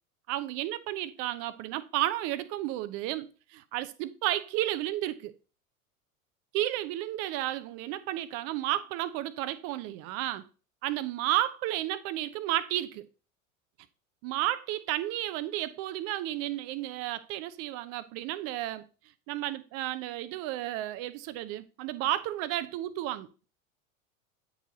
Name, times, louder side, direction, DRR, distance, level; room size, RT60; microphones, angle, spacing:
voice 1, 0.3-5.3 6.5-10.5 10.8-13.1 14.2-18.8 19.3-23.3, right 14 dB, 35° right, 0.6 m, -32 dB
9.3 x 4.1 x 2.8 m
figure-of-eight pair, 85°, 41 cm